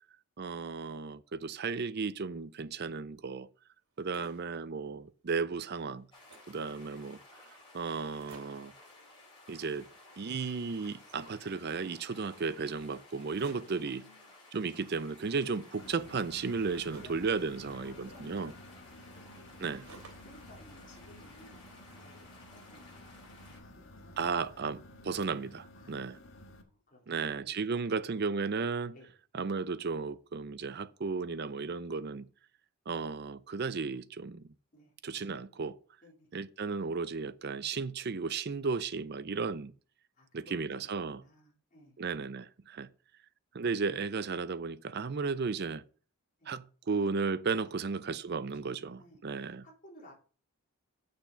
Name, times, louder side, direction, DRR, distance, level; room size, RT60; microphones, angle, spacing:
voice 1, 0.4-3.5 4.0-6.1 6.5-7.2 7.7-8.7 9.5-9.9 10.2-14.0 14.5-18.5 19.6-19.8 24.2-26.2 27.1-28.9 29.3-32.3 32.9-34.4 35.0-35.8 36.3-39.7 40.3-41.2 42.0-42.9 43.5-45.8 46.5-49.6, right 4 dB, 45° right, 0.5 m, -34 dB
sound 1, 3.8-4.6 5.1-5.2 5.4-6.6 7.3-7.4 7.6-7.7 8.0-8.7 9.5-10.3 10.5-11.8 13.2-13.9 14.8-17.3 18.1-20.4 20.8-21.7, right 3 dB, 70° right, 2.9 m, -59 dB
sound 2, 6.1-23.6, left 2 dB, 20° left, 6.0 m, -56 dB
voice 2, 13.5-14.3 17.0-17.3 17.8-19.7 20.2-24.6 25.7-28.2 28.9-29.1 34.7-34.9 36.0-36.3 40.1-42.0 46.4-46.5 47.6-47.9 48.3-48.7 49.0-49.2 49.6-50.1, equal, 35° left, 3.8 m, -59 dB
sound 3, 15.8-26.6, left 1 dB, 65° left, 1.4 m, -53 dB
8.1 x 6.6 x 5.6 m
head